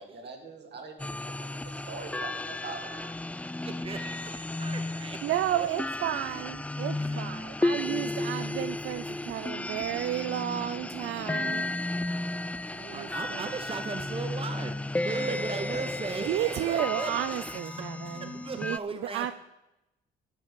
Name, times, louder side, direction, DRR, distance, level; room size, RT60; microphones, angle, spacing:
voice 1, 0.0-3.1 15.1-15.8, right 4 dB, 60° right, 3 dB, 2.5 m, -41 dB
sound 1, 1.0-18.8, left 2 dB, 5° left, 0.3 m, -34 dB
voice 2, 3.6-5.2 5.5-5.7 6.8-7.4 7.8-7.9 12.6-19.3, right 4 dB, 25° right, 7 dB, 0.9 m, -38 dB
voice 3, 5.2-11.7 12.7-13.6 16.3-19.3, right 13 dB, 80° right, 12 dB, 0.5 m, -32 dB
11.0 x 5.8 x 8.3 m, 0.92 s
cardioid pair, 90°, 20 cm